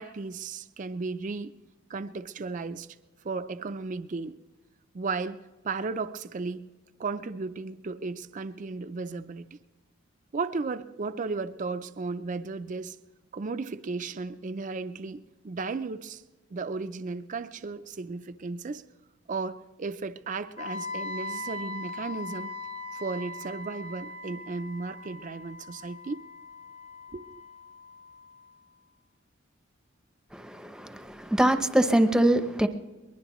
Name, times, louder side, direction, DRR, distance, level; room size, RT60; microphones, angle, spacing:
voice 1, 0.0-1.5 1.9-2.9 3.2-4.4 4.9-6.7 7.0-9.5 10.3-13.0 13.3-16.2 16.5-18.8 19.3-22.5 22.9-26.2 27.1-27.3, right 4 dB, 40° right, 0.4 m, -35 dB
Wind instrument woodwind instrument, 20.6-28.5, left 2 dB, 35° left, 0.9 m, -40 dB
voice 2, 30.3-32.7, right 1 dB, 5° right, 0.7 m, -23 dB
22.5 x 21.0 x 3.0 m
head